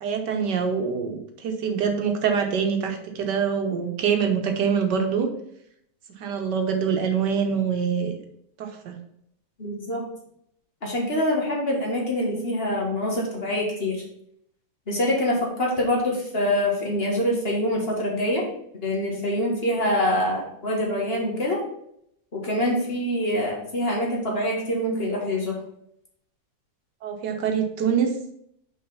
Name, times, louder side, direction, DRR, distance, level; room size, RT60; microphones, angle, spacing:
voice 1, 0.0-5.3 6.2-8.2 8.6-9.0 27.0-28.1, right 6 dB, 90° right, 5 dB, 1.7 m, -25 dB
voice 2, 9.6-10.0 10.8-14.0 14.9-18.5 18.8-21.6 22.3-25.6, left 1 dB, 35° left, -1 dB, 1.8 m, -25 dB
5.6 x 5.0 x 5.5 m, 0.73 s
omnidirectional pair, 1.8 m